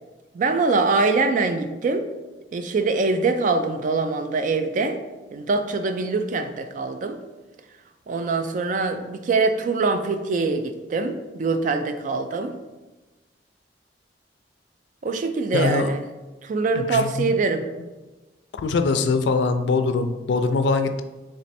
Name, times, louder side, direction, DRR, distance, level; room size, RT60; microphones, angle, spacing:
voice 1, 0.3-2.1 2.5-5.0 5.3-7.2 8.1-12.5 15.0-16.0 16.4-17.7, right 3 dB, 45° right, 8 dB, 0.3 m, -23 dB
voice 2, 15.5-15.9 16.7-17.3 18.5-21.0, left 4 dB, 85° left, 8 dB, 0.4 m, -22 dB
3.2 x 3.1 x 4.2 m, 1.1 s
head